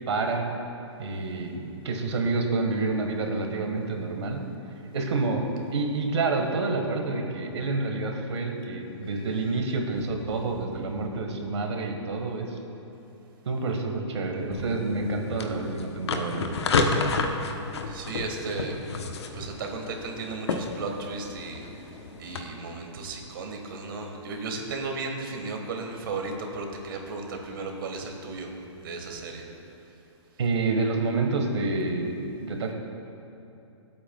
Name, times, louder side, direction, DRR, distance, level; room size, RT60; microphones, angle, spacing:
voice 1, 0.1-0.5 1.0-4.4 4.9-12.6 13.4-16.9 30.4-32.7, right 3 dB, 70° right, 3 dB, 1.6 m, -28 dB
sound 1, 14.5-22.4, left 3 dB, 65° left, 1.0 m, -31 dB
voice 2, 17.8-18.7 19.3-21.9 22.2-28.5 28.8-29.4, right 3 dB, 50° right, 2 dB, 1.6 m, -35 dB
23.0 x 8.6 x 2.3 m, 2.9 s
hypercardioid pair, 170°, 15 cm